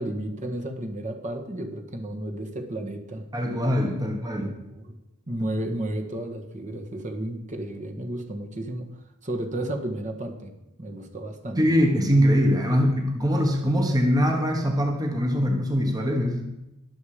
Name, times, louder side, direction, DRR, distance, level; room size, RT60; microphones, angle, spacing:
voice 1, 0.0-3.3 4.3-5.0 5.3-8.9 9.2-10.5 10.8-11.6 12.7-12.8, right 1 dB, 35° right, 3 dB, 1.6 m, -33 dB
voice 2, 3.3-4.5 11.6-16.4, equal, 15° right, 2 dB, 1.5 m, -22 dB
21.5 x 7.3 x 5.0 m, 0.96 s
head